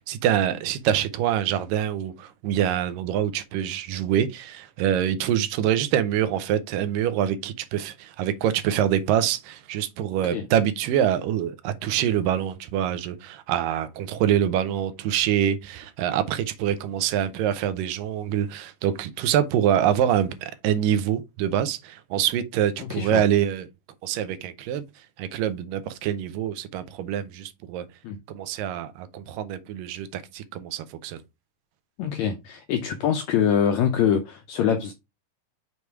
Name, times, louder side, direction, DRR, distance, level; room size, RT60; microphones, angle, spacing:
voice 1, 0.1-23.7 24.0-24.8 25.2-27.9 28.3-31.2, right 10 dB, 85° right, 2.4 m, -25 dB
voice 2, 22.8-23.2 28.0-28.2 32.0-34.9, left 8 dB, 80° left, 1.6 m, -24 dB
6.8 x 3.2 x 4.6 m
omnidirectional pair, 3.9 m